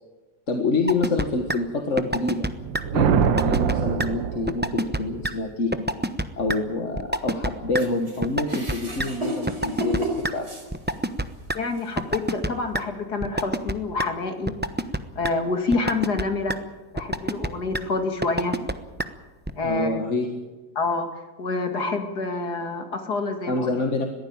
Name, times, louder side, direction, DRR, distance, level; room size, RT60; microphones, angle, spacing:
voice 1, 0.5-2.5 2.9-5.9 6.4-10.5 19.6-20.3 23.5-24.1, left 3 dB, 40° left, 5 dB, 1.9 m, -26 dB
sound 1, 0.9-1.2 1.5-1.6 2.0-2.5 2.7-2.8 3.2-3.7 4.0-4.1 4.5-5.0 5.2-5.3 5.7-6.2 6.5-6.6 7.0-7.5 7.7-7.8 8.2-8.7 9.0-9.1 9.5-10.3 10.7-11.6 12.0-12.5 12.7-12.8 13.2-13.7 14.0-14.1 14.5-15.0 15.2-15.3 15.7-16.2 16.5-16.6 17.0-17.5 17.7-17.8 18.2-18.7 19.0-19.1 19.5-19.6, right 1 dB, 10° right, 0.5 m, -25 dB
sound 2, 2.5-5.0, right 8 dB, 85° right, 1.7 m, -24 dB
sound 3, 7.8-11.2 11.7-11.9 12.8-12.9, right 1 dB, 35° right, 4.9 m, -32 dB
voice 2, 11.5-14.6 15.2-16.6 16.9-18.5 19.6-19.9 20.8-21.1 21.4-23.7, left 3 dB, 60° left, 6 dB, 2.8 m, -27 dB
22.0 x 15.0 x 8.8 m, 1.2 s
omnidirectional pair, 2.0 m